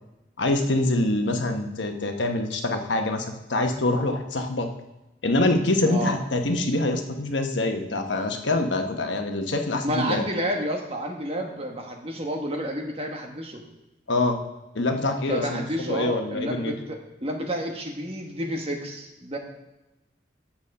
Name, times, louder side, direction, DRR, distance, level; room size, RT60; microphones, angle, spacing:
voice 1, 0.4-4.7 5.2-10.3 14.1-14.4 14.7-16.7, left 2 dB, 80° left, 5 dB, 1.0 m, -25 dB
voice 2, 5.9-6.2 9.8-13.6 15.3-19.4, equal, 30° right, 2 dB, 1.3 m, -30 dB
8.9 x 7.2 x 5.4 m, 1.0 s
head